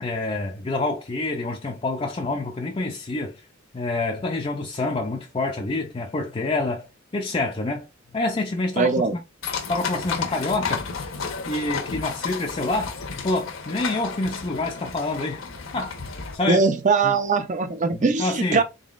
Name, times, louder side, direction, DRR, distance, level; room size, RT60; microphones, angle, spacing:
voice 1, 0.0-3.4 3.7-6.9 7.1-7.9 8.1-8.9 9.7-10.9 11.5-13.0 13.2-15.4 15.7-16.7 17.0-17.2 17.9-18.6, left 2 dB, 25° left, 0.4 m, -27 dB
voice 2, 8.8-9.2 16.5-18.6, right 4 dB, 35° right, 0.5 m, -21 dB
sound 1, 9.4-16.4, left 5 dB, 80° left, 1.0 m, -32 dB
3.9 x 3.7 x 2.4 m
head